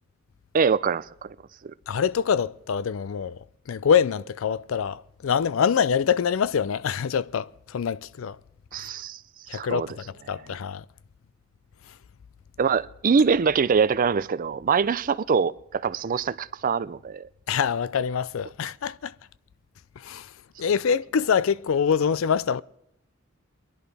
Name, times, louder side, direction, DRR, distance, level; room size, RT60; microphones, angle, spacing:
voice 1, 0.5-1.4 1.6-1.7 8.7-9.2 9.5-9.9 12.6-17.3, right 6 dB, 40° right, 0.4 m, -24 dB
voice 2, 1.9-8.4 9.5-10.8 17.5-19.1 20.0-20.3 20.6-22.6, left 7 dB, 75° left, 0.4 m, -25 dB
23.5 x 11.0 x 3.4 m
head